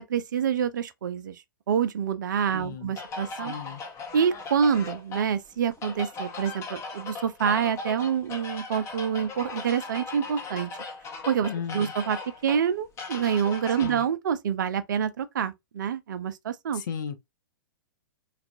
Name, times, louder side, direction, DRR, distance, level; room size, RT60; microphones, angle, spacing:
voice 1, 0.0-1.4 1.7-3.5 4.1-10.7 11.3-12.2 12.4-16.8, right 7 dB, 55° right, 0.4 m, -27 dB
voice 2, 2.5-2.9 3.4-3.8 11.5-11.9 13.8-14.0 16.7-17.2, left 7 dB, 55° left, 0.6 m, -35 dB
sound 1, 2.9-14.0, left 4 dB, 25° left, 0.8 m, -38 dB
3.3 x 2.3 x 2.6 m
figure-of-eight pair, 105°, 12 cm